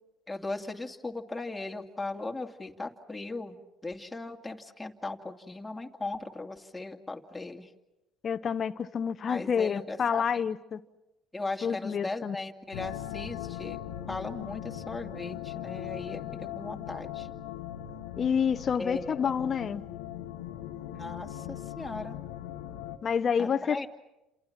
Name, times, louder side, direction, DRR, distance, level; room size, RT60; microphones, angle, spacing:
voice 1, 0.3-3.6 3.8-7.7 9.3-10.4 11.3-13.8 14.1-17.3 18.8-19.1 20.9-22.2 23.4-23.9, left 2 dB, 10° left, 2.5 m, -38 dB
voice 2, 8.2-10.8 11.6-12.4 18.2-19.8 23.0-23.9, left 7 dB, 45° left, 0.9 m, -28 dB
sound 1, 12.7-23.0, left 12 dB, 85° left, 1.2 m, -39 dB
30.0 x 27.5 x 5.9 m
supercardioid pair, 75°, 0 cm